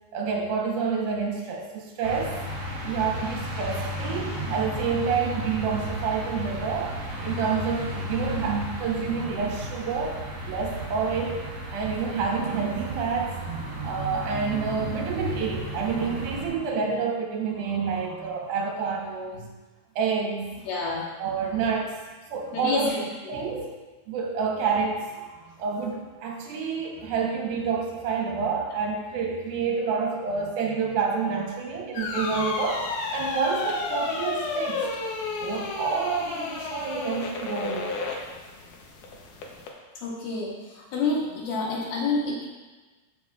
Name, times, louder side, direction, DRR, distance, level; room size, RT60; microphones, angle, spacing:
voice 1, 0.1-2.4 2.8-11.4 11.7-19.5 20.0-20.5 21.2-21.9 22.3-22.9 23.3-23.7 24.1-34.8 35.4-37.9, right 5 dB, 80° right, -1 dB, 2.8 m, -28 dB
sound 1, 2.0-16.5, equal, 50° right, 2.4 m, -34 dB
voice 2, 20.7-21.0 22.5-23.0 40.0-42.5, left 3 dB, 90° left, -5 dB, 3.7 m, -28 dB
sound 2, 31.9-39.7, left 4 dB, 70° left, 2.1 m, -32 dB
13.5 x 5.4 x 2.4 m, 1.3 s
omnidirectional pair, 4.3 m